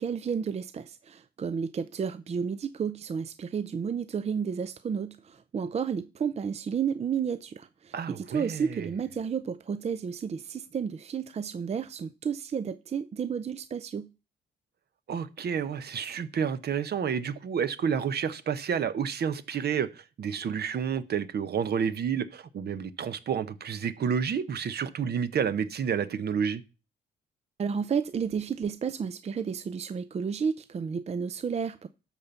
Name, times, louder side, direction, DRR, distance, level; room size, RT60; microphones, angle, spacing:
voice 1, 0.0-14.1 27.6-31.9, right 6 dB, 30° right, 0.5 m, -32 dB
voice 2, 7.9-8.9 15.1-26.6, right 7 dB, 55° right, 1.0 m, -30 dB
12.0 x 4.5 x 6.9 m
cardioid pair, 90°, 20 cm